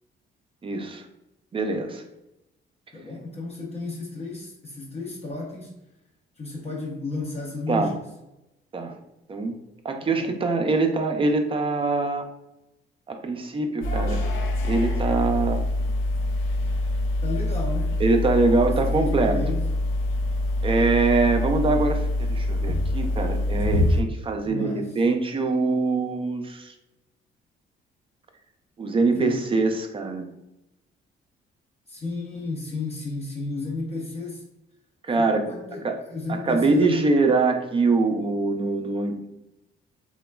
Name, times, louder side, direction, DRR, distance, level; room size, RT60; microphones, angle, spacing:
voice 1, 0.6-1.0 1.5-2.0 7.7-7.9 8.7-9.0 9.3-9.5 9.8-12.2 13.1-14.2 14.6-15.6 18.0-19.4 20.6-26.7 28.8-30.3 35.1-35.5 35.8-36.0 36.3-39.3, right 3 dB, 25° right, 5 dB, 0.4 m, -23 dB
voice 2, 2.9-5.8 6.4-8.0 10.0-10.4 17.2-18.0 18.7-19.7 24.4-25.0 29.0-29.4 31.9-34.4 35.1-37.1, left 3 dB, 30° left, -3 dB, 0.6 m, -33 dB
sound 1, 13.8-24.0, left 1 dB, 80° left, 0.4 m, -25 dB
3.0 x 2.2 x 2.2 m, 0.90 s
cardioid pair, 90°, 20 cm